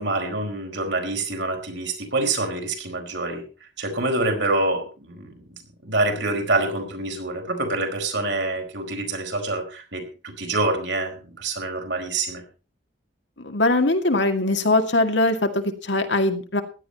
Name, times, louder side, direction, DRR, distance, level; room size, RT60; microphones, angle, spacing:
voice 1, 0.0-3.4 3.8-5.4 5.8-12.4, right 2 dB, 75° right, 3 dB, 4.7 m, -26 dB
voice 2, 13.4-16.6, left 2 dB, 75° left, 6 dB, 2.2 m, -21 dB
16.0 x 11.5 x 4.2 m, 0.34 s
head